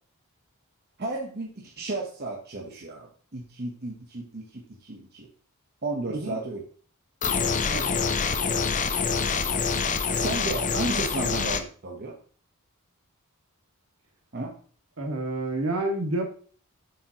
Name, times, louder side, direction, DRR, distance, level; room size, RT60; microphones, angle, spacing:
voice 1, 1.0-5.3 5.8-6.6 9.2-9.6 10.1-12.1 14.3-14.5, right 2 dB, 45° right, -1 dB, 1.1 m, -34 dB
sound 1, 7.2-11.6, left 5 dB, 35° left, 0.6 m, -26 dB
voice 2, 15.0-16.2, right 2 dB, 75° right, 2 dB, 2.1 m, -28 dB
7.4 x 7.1 x 3.0 m, 0.43 s
head